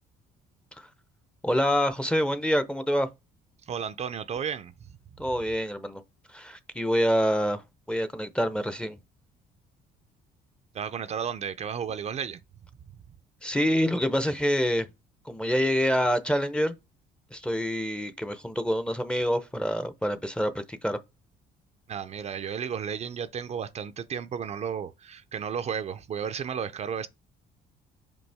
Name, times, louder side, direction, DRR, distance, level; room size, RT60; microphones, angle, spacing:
voice 1, 1.4-3.1 5.2-6.0 6.3-7.6 7.9-9.0 13.4-14.9 15.3-16.7 17.3-21.0, equal, 5° left, 0.6 m, -26 dB
voice 2, 3.7-4.7 10.7-12.4 21.9-27.1, right 7 dB, 40° right, 0.5 m, -33 dB
5.5 x 5.3 x 3.4 m
cardioid pair, 110°, 17 cm